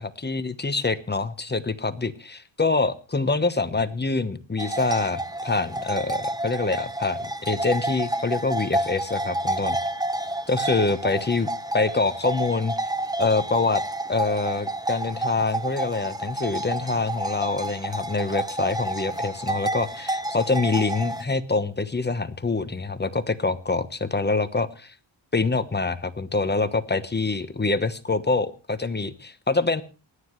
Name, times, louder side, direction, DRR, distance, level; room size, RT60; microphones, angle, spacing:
voice 1, 0.2-9.8 10.5-11.5 11.7-12.7 13.2-13.8 14.1-24.9 25.3-29.8, left 3 dB, 20° left, 12 dB, 1.1 m, -25 dB
sound 1, 4.6-21.2, right 1 dB, 10° right, 0.9 m, -30 dB
27.0 x 9.7 x 3.2 m, 0.35 s
cardioid pair, 95°, 50 cm